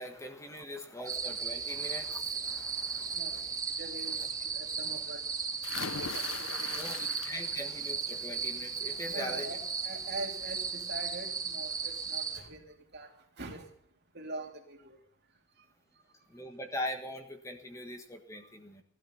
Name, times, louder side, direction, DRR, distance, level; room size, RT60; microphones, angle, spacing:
voice 1, 0.0-3.2 5.9-9.5 16.3-18.8, left 1 dB, 15° left, 5 dB, 1.4 m, -42 dB
sound 1, 1.1-12.4, right 5 dB, 15° right, 2.1 m, -36 dB
voice 2, 3.1-3.4 3.8-5.2 6.4-6.9 7.5-7.6 9.0-13.7 14.1-15.0, right 2 dB, 50° right, 3 dB, 2.9 m, -44 dB
sound 2, 5.6-7.7 8.1-8.5 9.9-10.0 10.4-10.5, left 6 dB, 65° left, 0.8 m, -40 dB
17.0 x 12.5 x 5.7 m, 0.67 s
head